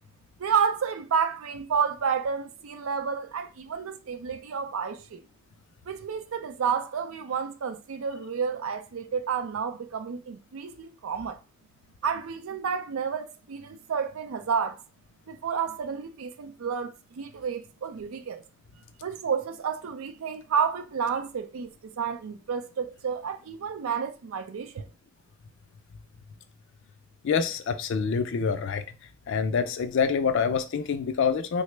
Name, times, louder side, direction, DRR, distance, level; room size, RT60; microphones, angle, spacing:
voice 1, 0.4-5.2 5.9-11.4 12.0-14.8 15.3-18.4 19.0-21.7 22.0-24.9, right 6 dB, 85° right, 0.4 m, -30 dB
voice 2, 27.2-28.9 29.3-31.6, left 6 dB, 60° left, 0.4 m, -26 dB
3.6 x 2.0 x 3.2 m
head